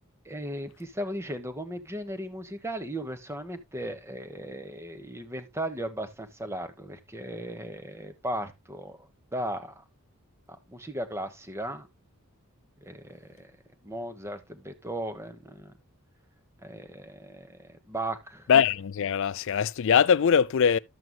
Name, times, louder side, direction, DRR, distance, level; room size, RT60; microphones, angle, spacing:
voice 1, 0.2-9.8 10.7-11.9 12.8-13.5 13.8-15.7 16.6-18.5, right 1 dB, 10° right, 1.0 m, -36 dB
voice 2, 18.5-20.8, left 7 dB, 60° left, 0.4 m, -22 dB
12.5 x 7.8 x 2.2 m
head